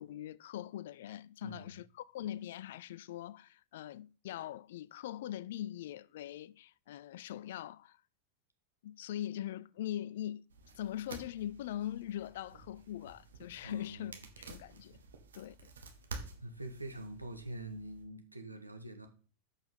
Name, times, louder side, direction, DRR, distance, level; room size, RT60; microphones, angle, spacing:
voice 1, 0.0-8.0 8.8-10.4 10.8-15.0 15.3-15.7, left 12 dB, 55° left, 0.3 m, -42 dB
voice 2, 1.4-1.8 13.6-14.2 16.4-19.1, right 1 dB, 85° right, 1.3 m, -45 dB
sound 1, 10.5-18.1, right 3 dB, 70° right, 1.4 m, -51 dB
6.9 x 5.6 x 5.4 m
figure-of-eight pair, 90°, 0 cm